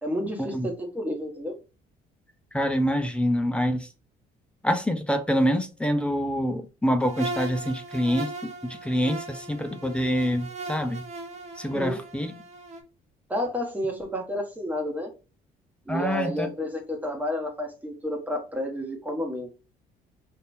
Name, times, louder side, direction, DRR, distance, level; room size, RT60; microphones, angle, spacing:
voice 1, 0.0-1.5 11.7-12.0 13.3-15.1 15.9-19.5, equal, 10° right, 1.4 m, -30 dB
voice 2, 2.5-3.9 4.6-11.0 11.6-12.3 15.9-16.5, equal, 5° left, 0.6 m, -26 dB
sound 1, 7.0-12.8, right 2 dB, 40° right, 1.0 m, -38 dB
3.4 x 2.8 x 2.6 m
cardioid pair, 110°, 17 cm